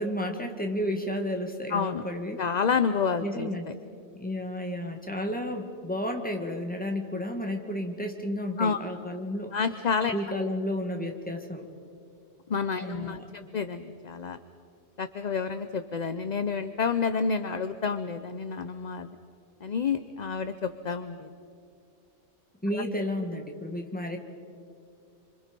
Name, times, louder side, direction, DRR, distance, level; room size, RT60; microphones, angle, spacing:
voice 1, 0.0-2.4 3.2-3.7 4.1-9.6 10.1-11.7 12.8-13.5 22.6-24.2, left 1 dB, 5° left, 3 dB, 2.0 m, -32 dB
voice 2, 1.7-2.0 2.4-3.5 8.6-8.8 9.5-10.1 12.5-14.4 15.0-19.1 19.6-21.3 22.7-22.8, left 5 dB, 45° left, 10 dB, 0.8 m, -29 dB
28.5 x 26.0 x 5.4 m, 2.5 s
omnidirectional pair, 1.2 m